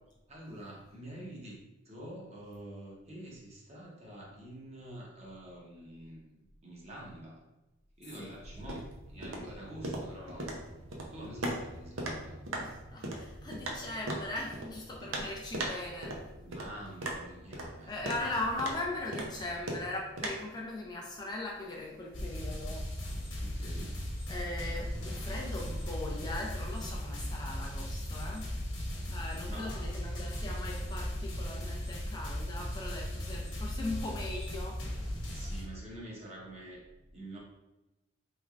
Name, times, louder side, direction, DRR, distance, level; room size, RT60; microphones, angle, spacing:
voice 1, 0.3-7.4 8.0-8.9 9.1-10.8 11.1-12.4 16.4-18.0 23.4-24.0 29.5-30.0 35.2-36.8 37.1-37.4, right 1 dB, 35° right, -3 dB, 0.8 m, -47 dB
sound 1, 8.4-20.3, right 1 dB, 85° right, 0.6 m, -40 dB
voice 2, 12.6-16.3 17.9-22.9 24.3-28.5 29.1-35.2, left 2 dB, 20° left, -2 dB, 0.4 m, -39 dB
sound 2, 22.1-35.6, equal, 70° left, 1.0 m, -37 dB
3.5 x 3.2 x 2.4 m, 1.0 s
head